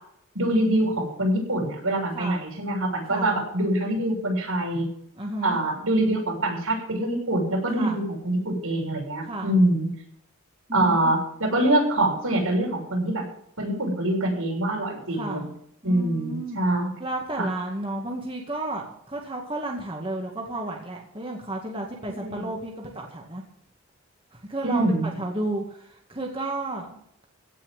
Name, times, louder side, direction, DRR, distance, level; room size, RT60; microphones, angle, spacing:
voice 1, 0.3-4.9 5.4-9.9 10.7-13.2 13.6-15.5 15.8-17.0 17.4-17.5 22.2-22.5 24.6-25.1, right 1 dB, 80° right, -1 dB, 6.8 m, -24 dB
voice 2, 5.2-5.6 7.7-8.0 9.2-9.5 10.7-11.1 15.1-15.5 15.8-16.6 17.0-23.4 24.3-24.8 25.2-25.8 26.1-27.3, right 2 dB, 25° right, -1 dB, 2.1 m, -32 dB
17.0 x 5.8 x 9.1 m, 0.70 s
head